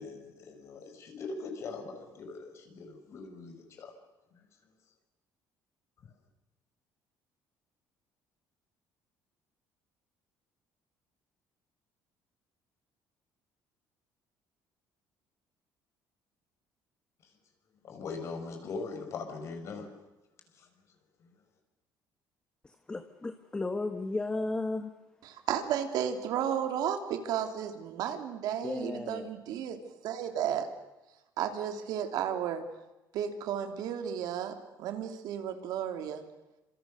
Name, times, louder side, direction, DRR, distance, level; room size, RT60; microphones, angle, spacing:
voice 1, 0.0-3.9 4.3-4.5 17.8-19.9 20.6-20.7 21.2-21.3, left 4 dB, 40° left, 6 dB, 5.6 m, -41 dB
voice 2, 22.6-24.9 28.6-29.3, left 2 dB, 10° left, 8 dB, 1.3 m, -34 dB
voice 3, 25.2-29.8 30.0-30.7 31.4-32.6 33.1-36.2, right 9 dB, 65° right, 6 dB, 3.2 m, -33 dB
29.5 x 27.0 x 6.6 m, 1.0 s
cardioid pair, 165°, 7 cm